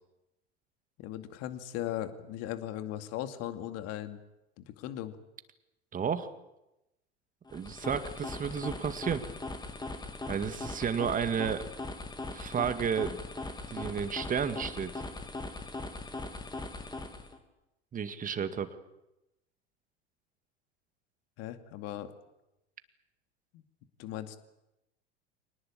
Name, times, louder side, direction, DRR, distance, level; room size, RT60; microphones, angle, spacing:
voice 1, 1.0-4.2 4.6-5.2 21.4-22.1 23.5-23.6 24.0-24.4, left 12 dB, 45° left, 9 dB, 2.4 m, -38 dB
voice 2, 5.9-6.3 7.5-9.2 10.3-11.7 12.3-13.2 13.7-15.0 17.9-18.8, right 7 dB, 25° right, 10 dB, 2.1 m, -32 dB
sound 1, 7.5-17.4, left 2 dB, 10° left, 3.0 m, -40 dB
26.0 x 19.0 x 8.5 m, 0.91 s
figure-of-eight pair, 85°, 34 cm